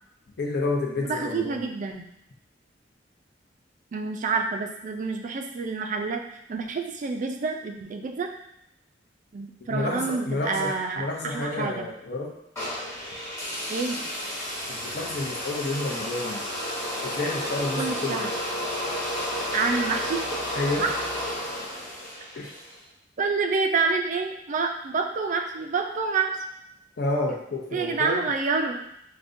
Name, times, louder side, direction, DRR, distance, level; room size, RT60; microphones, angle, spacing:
voice 1, 0.4-1.6 9.7-12.3 14.7-16.4 17.0-18.3 20.5-21.0 22.3-22.5 27.0-28.3, left 2 dB, 60° left, -1 dB, 0.7 m, -30 dB
voice 2, 1.0-2.1 3.9-6.2 6.5-8.3 9.3-11.9 13.7-14.0 17.8-18.3 19.5-20.2 20.8-20.9 23.2-26.4 27.7-28.9, right 4 dB, 45° right, 4 dB, 0.3 m, -28 dB
sound 1, 12.6-22.7, equal, 15° left, 1.2 m, -32 dB
5.0 x 2.2 x 2.5 m, 0.80 s
head